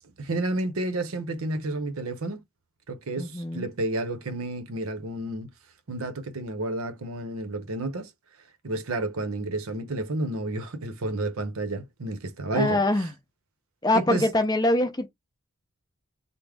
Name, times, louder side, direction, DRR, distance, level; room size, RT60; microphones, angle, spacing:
voice 1, 0.2-2.4 2.9-5.5 5.9-8.1 8.6-12.8 13.9-14.2, right 2 dB, 90° right, 0.7 m, -30 dB
voice 2, 3.2-3.7 12.5-13.1 13.8-15.1, left 1 dB, 20° left, 0.6 m, -24 dB
3.5 x 2.0 x 3.4 m
head